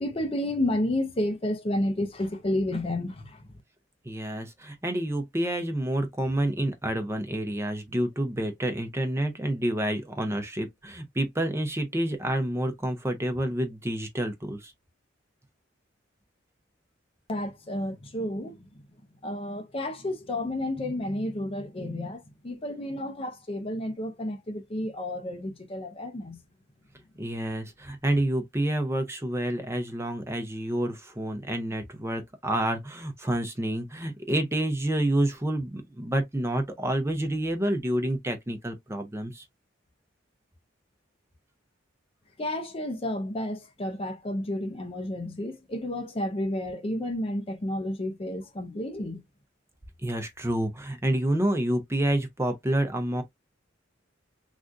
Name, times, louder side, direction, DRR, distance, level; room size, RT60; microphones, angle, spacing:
voice 1, 0.0-3.4 17.3-18.5 19.2-26.4 42.4-49.2, left 1 dB, 30° left, 0.5 m, -31 dB
voice 2, 4.0-14.7 27.2-39.4 50.0-53.2, right 1 dB, 15° right, 0.6 m, -28 dB
3.4 x 2.5 x 2.5 m
head